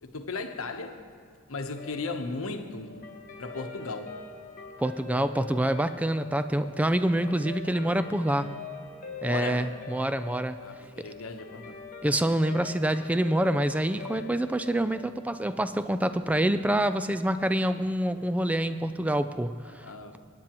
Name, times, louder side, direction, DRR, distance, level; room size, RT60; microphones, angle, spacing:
voice 1, 0.0-1.0 1.5-2.9 3.4-4.2 9.2-9.7 10.6-11.8 19.8-20.2, left 3 dB, 80° left, 0.9 m, -36 dB
Guitar, 1.7-16.3, left 5 dB, 40° left, 1.1 m, -43 dB
voice 2, 4.8-8.5 9.2-10.6 11.0-11.1 12.0-19.8, right 1 dB, 5° right, 0.3 m, -26 dB
23.0 x 9.5 x 3.0 m
head